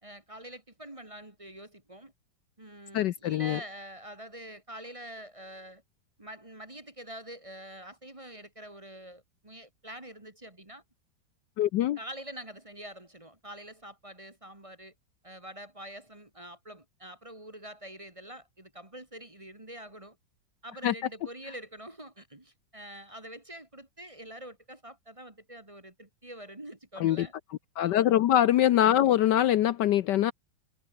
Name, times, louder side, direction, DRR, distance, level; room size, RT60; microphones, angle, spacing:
voice 1, 0.0-2.1 2.6-5.8 6.2-10.8 12.0-14.9 15.2-20.2 20.6-27.3 27.9-28.2, right 1 dB, 15° right, 1.9 m, -45 dB
voice 2, 2.9-3.6 11.6-12.0 20.8-20.9 27.0-27.3 27.8-30.3, left 12 dB, 70° left, 1.2 m, -23 dB
omnidirectional pair, 2.1 m